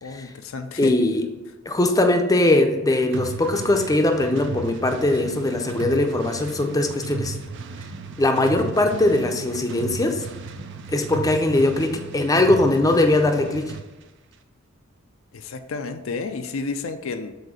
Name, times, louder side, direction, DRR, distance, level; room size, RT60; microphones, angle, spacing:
voice 1, 0.0-1.0 15.3-17.3, left 4 dB, 70° left, 8 dB, 0.5 m, -31 dB
voice 2, 0.8-1.2 1.7-7.3 8.2-10.2 10.9-11.9 12.1-13.6, left 2 dB, 15° left, 4 dB, 0.5 m, -20 dB
sound 1, 3.1-13.9, right 4 dB, 60° right, 0.5 m, -35 dB
7.7 x 2.7 x 4.9 m, 1.1 s
head